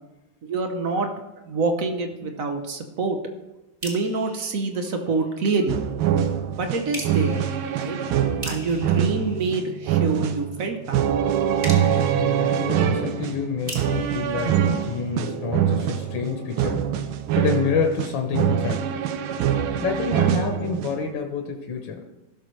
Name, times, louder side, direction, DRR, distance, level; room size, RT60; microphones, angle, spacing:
voice 1, 0.4-1.1 1.5-3.2 3.8-5.8 6.6-7.4 7.7-8.0 8.4-11.0, right 3 dB, 55° right, 5 dB, 0.9 m, -26 dB
sound 1, 3.8-5.5 6.9-10.2 11.6-15.5, right 1 dB, 20° right, 1.9 m, -41 dB
sound 2, 5.7-21.1, right 9 dB, 80° right, 1.5 m, -24 dB
voice 2, 12.1-16.9 17.4-19.0 19.8-22.0, left 5 dB, 65° left, 2 dB, 1.6 m, -28 dB
16.5 x 6.5 x 3.2 m, 1.0 s
omnidirectional pair, 2.3 m